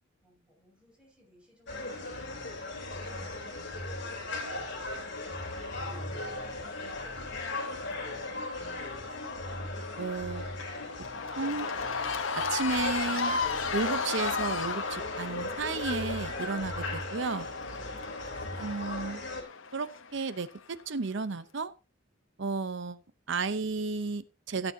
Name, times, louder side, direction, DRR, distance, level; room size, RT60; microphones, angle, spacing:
voice 1, 0.2-8.1 17.7-18.1, equal, 5° right, -1 dB, 5.4 m, -60 dB
sound 1, 1.7-19.4, left 2 dB, 60° left, 3.2 m, -37 dB
Cheering / Crowd, 5.5-20.8, left 5 dB, 80° left, 1.0 m, -37 dB
voice 2, 10.0-10.5 11.4-11.7 12.3-13.4 13.7-17.5 18.6-19.2 19.7-21.7 22.4-23.0 23.3-24.7, right 4 dB, 65° right, 13 dB, 0.7 m, -33 dB
16.5 x 8.9 x 2.7 m, 0.30 s
head